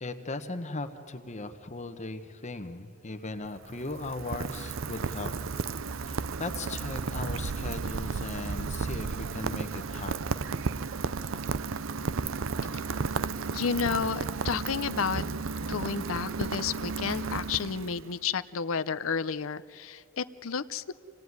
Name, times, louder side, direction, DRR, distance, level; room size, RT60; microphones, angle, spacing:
voice 1, 0.0-5.3 6.1-10.4, left 2 dB, 35° left, 8 dB, 1.0 m, -38 dB
Rain, 3.4-18.2, right 4 dB, 75° right, 0.6 m, -33 dB
voice 2, 13.5-15.2 15.7-20.9, left 6 dB, 90° left, 12 dB, 0.7 m, -31 dB
27.5 x 17.5 x 9.5 m, 2.5 s
head